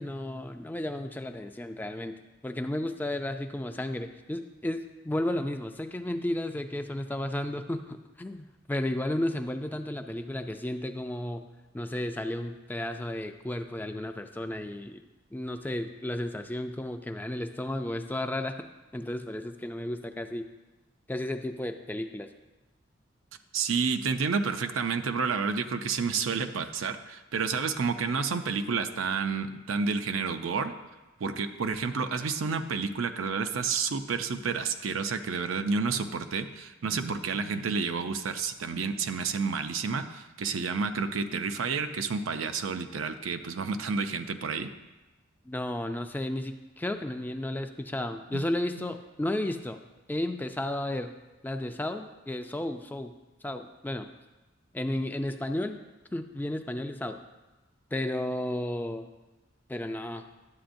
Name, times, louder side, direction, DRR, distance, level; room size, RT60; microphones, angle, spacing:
voice 1, 0.0-2.1 2.4-11.5 11.7-15.0 15.3-18.6 18.9-20.5 21.1-22.3 45.5-49.8 50.1-51.1 51.4-53.1 53.4-54.1 54.7-55.8 56.1-57.2 57.9-59.1 59.7-60.2, left 1 dB, 10° left, 7 dB, 0.3 m, -33 dB
voice 2, 23.5-30.7 31.2-44.7 48.3-48.4, right 5 dB, 85° right, 8 dB, 0.5 m, -30 dB
11.5 x 7.9 x 2.6 m, 1.1 s
head